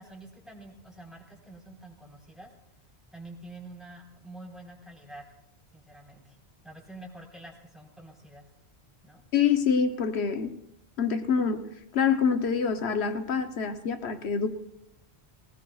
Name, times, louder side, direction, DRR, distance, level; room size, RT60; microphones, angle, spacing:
voice 1, 0.0-2.5 3.1-5.3 5.7-6.4 6.6-8.4 9.0-9.2, right 2 dB, ahead, 3.8 m, -47 dB
voice 2, 9.3-10.5 11.0-14.5, left 6 dB, 80° left, 1.1 m, -26 dB
20.0 x 19.0 x 2.3 m
omnidirectional pair, 1.1 m